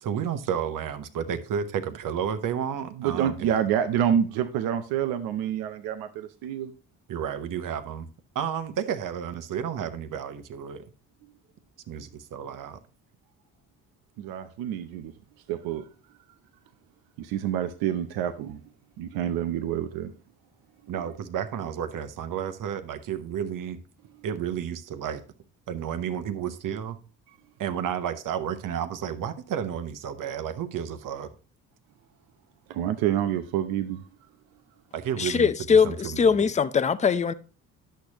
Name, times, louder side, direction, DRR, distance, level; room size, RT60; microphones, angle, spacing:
voice 1, 0.0-3.5 7.1-8.1 8.3-10.9 11.9-12.8 20.9-23.8 24.2-25.2 25.7-27.0 27.6-31.3 34.9-36.4, right 8 dB, 60° right, 1.0 m, -31 dB
voice 2, 3.0-6.7 14.2-15.1 15.5-15.9 17.2-18.6 19.0-20.1 32.7-34.0, right 10 dB, 85° right, 0.7 m, -27 dB
voice 3, 35.2-37.3, left 6 dB, 20° left, 0.5 m, -21 dB
10.5 x 6.5 x 2.9 m
supercardioid pair, 75°, 36 cm